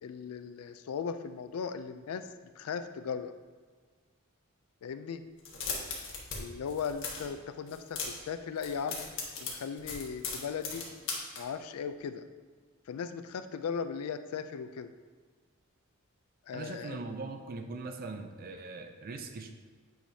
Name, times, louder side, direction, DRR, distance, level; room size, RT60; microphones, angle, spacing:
voice 1, 0.0-2.2 2.6-3.3 4.8-5.2 6.3-8.0 8.3-9.0 9.4-10.8 11.4-12.2 12.9-14.9 16.5-17.0, left 6 dB, 85° left, 10 dB, 0.4 m, -37 dB
sound 1, 5.4-6.4 6.6-7.3 7.7-8.3 8.6-11.4, left 5 dB, 60° left, 1.3 m, -37 dB
voice 2, 16.5-19.5, right 3 dB, 45° right, 6 dB, 0.4 m, -41 dB
9.0 x 5.0 x 2.7 m, 1.5 s
head